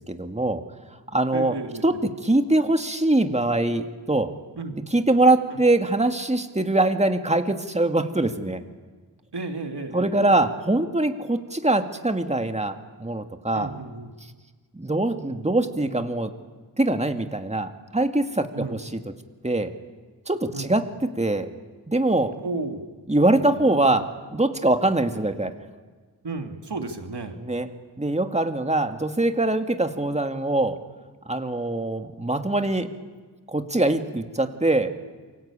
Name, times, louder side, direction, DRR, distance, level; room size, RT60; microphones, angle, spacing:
voice 1, 0.1-0.6 1.1-1.5 1.8-4.4 4.9-8.6 9.9-13.7 14.7-16.3 16.8-19.0 19.4-19.8 20.3-21.5 21.9-22.4 23.1-25.5 27.4-27.7 28.0-30.8 31.3-32.9 33.5-35.0, right 2 dB, 15° right, 7 dB, 2.1 m, -23 dB
voice 2, 1.3-1.8 4.6-4.8 9.3-10.5 13.5-14.1 18.5-18.7 20.5-20.7 22.4-22.8 23.3-23.6 26.2-27.4, right 3 dB, 70° right, 5 dB, 3.0 m, -33 dB
28.0 x 23.5 x 8.9 m, 1.4 s
wide cardioid pair, 55°, 42 cm